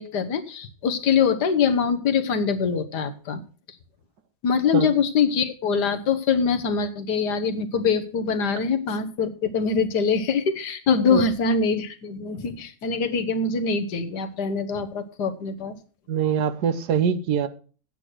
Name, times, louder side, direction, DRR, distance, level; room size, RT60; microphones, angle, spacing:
voice 1, 0.0-3.4 4.4-15.8, left 5 dB, 80° left, 8 dB, 1.7 m, -24 dB
voice 2, 16.1-17.5, right 8 dB, 75° right, 12 dB, 1.5 m, -23 dB
9.0 x 8.4 x 6.1 m, 0.39 s
omnidirectional pair, 1.8 m